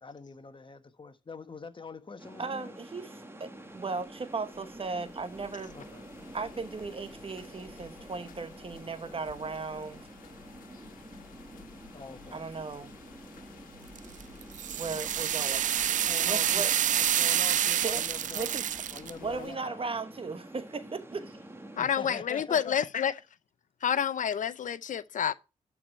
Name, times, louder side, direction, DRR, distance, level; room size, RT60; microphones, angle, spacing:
voice 1, 0.0-2.8 5.7-6.1 11.9-12.5 13.3-13.6 15.9-18.6 18.9-19.9 21.7-22.8, left 4 dB, 35° left, 1.3 m, -44 dB
sound 1, 2.2-21.8, right 1 dB, 15° right, 2.1 m, -48 dB
voice 2, 2.4-3.1 3.4-5.7 6.3-10.0 12.3-12.9 14.8-15.7 16.2-16.7 17.8-18.0 18.3-18.6 19.2-21.4, right 4 dB, 40° right, 1.2 m, -36 dB
sound 2, 3.6-19.6, left 8 dB, 85° left, 1.4 m, -54 dB
sound 3, 14.0-19.1, right 10 dB, 65° right, 0.4 m, -28 dB
voice 3, 21.8-23.1 23.8-25.3, left 8 dB, 65° left, 0.6 m, -29 dB
12.0 x 4.8 x 5.5 m
cardioid pair, 55°, 14 cm